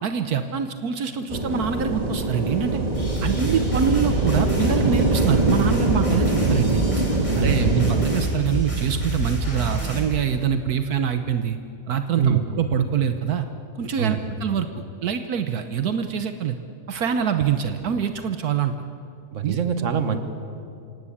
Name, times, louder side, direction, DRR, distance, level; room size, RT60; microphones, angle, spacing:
voice 1, 0.0-2.8 3.2-6.8 7.4-11.6 11.9-13.5 13.7-14.7 15.0-16.6 16.9-18.7 19.4-19.6, right 7 dB, 75° right, 8 dB, 1.4 m, -25 dB
sound 1, 1.3-8.2, right 2 dB, 25° right, 1.7 m, -23 dB
sound 2, 2.9-10.0, right 1 dB, 20° left, 4.6 m, -28 dB
voice 2, 7.3-7.9 12.2-12.4 14.0-14.2 19.3-20.2, right 7 dB, 55° right, 9 dB, 1.6 m, -24 dB
27.0 x 17.0 x 8.6 m, 2.6 s
omnidirectional pair, 1.6 m